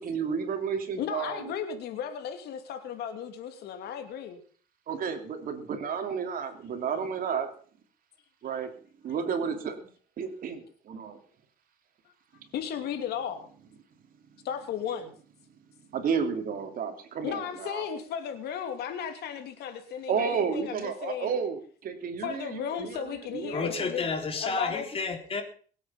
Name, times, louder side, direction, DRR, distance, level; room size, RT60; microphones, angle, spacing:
voice 1, 0.0-1.5 4.9-7.5 8.4-8.7 9.0-9.9 10.2-11.2 15.9-17.9 20.1-23.8, right 6 dB, 55° right, 6 dB, 3.0 m, -32 dB
voice 2, 1.0-4.4 12.5-13.5 14.4-15.1 17.2-21.3 22.2-24.1 24.4-24.9, left 8 dB, 75° left, 7 dB, 2.7 m, -35 dB
voice 3, 23.5-25.4, left 4 dB, 35° left, 5 dB, 3.7 m, -31 dB
22.0 x 8.5 x 5.8 m, 0.43 s
cardioid pair, 110°, 17 cm